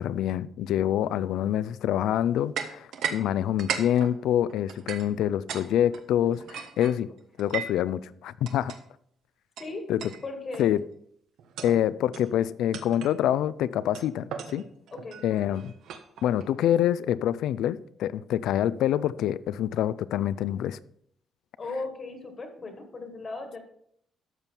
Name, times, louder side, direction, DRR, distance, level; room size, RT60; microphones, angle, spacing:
voice 1, 0.0-7.1 7.4-8.7 9.9-10.0 10.6-10.9 11.6-14.7 15.2-15.7 16.2-20.8, left 11 dB, 85° left, 0.4 m, -26 dB
sound 1, 2.6-3.2 3.5-5.7 5.9-7.9 8.5-8.8 9.6-9.7 10.0-10.2 10.5-10.8 11.4-11.8 12.1-12.3 12.7-13.2 14.0-16.4, right 7 dB, 80° right, 1.2 m, -36 dB
voice 2, 10.2-10.7 14.9-15.6 21.6-23.6, left 3 dB, 30° left, 1.5 m, -37 dB
12.5 x 7.0 x 4.5 m
cardioid pair, 175°, 0 cm